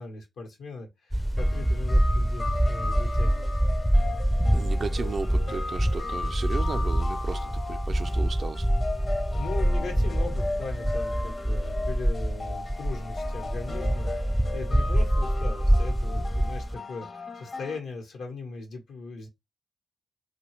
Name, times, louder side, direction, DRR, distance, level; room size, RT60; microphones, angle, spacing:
voice 1, 0.0-3.5 9.3-19.3, left 4 dB, 85° left, 0.9 m, -39 dB
sound 1, 1.1-16.7, equal, 5° left, 0.4 m, -26 dB
sound 2, 1.4-17.8, left 3 dB, 45° left, 0.7 m, -37 dB
voice 2, 4.5-8.7, right 4 dB, 60° right, 0.4 m, -35 dB
2.7 x 2.2 x 3.0 m
supercardioid pair, 45°, 0 cm